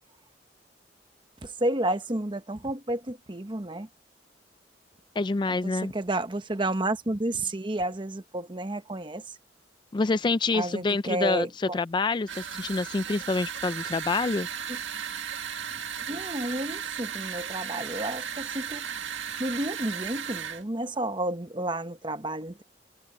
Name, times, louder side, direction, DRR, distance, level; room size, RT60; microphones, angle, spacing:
voice 1, 1.4-3.9 5.5-9.4 10.5-11.8 14.7-14.8 16.1-19.1 19.4-22.6, right 1 dB, 25° right, 1.1 m, -31 dB
voice 2, 5.2-5.9 9.9-11.5 11.7-14.5, left 3 dB, 25° left, 0.3 m, -27 dB
sound 1, 12.3-20.6, right 8 dB, 80° right, 1.8 m, -35 dB
head